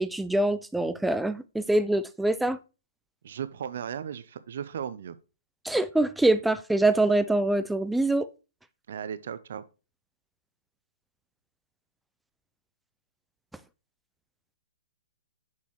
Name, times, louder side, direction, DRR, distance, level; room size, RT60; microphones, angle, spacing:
voice 1, 0.0-2.6 5.6-8.3, right 2 dB, 5° right, 0.3 m, -24 dB
voice 2, 3.2-5.2 8.9-9.6, right 8 dB, 65° right, 0.5 m, -36 dB
6.3 x 5.6 x 3.0 m
hypercardioid pair, 135°, 0 cm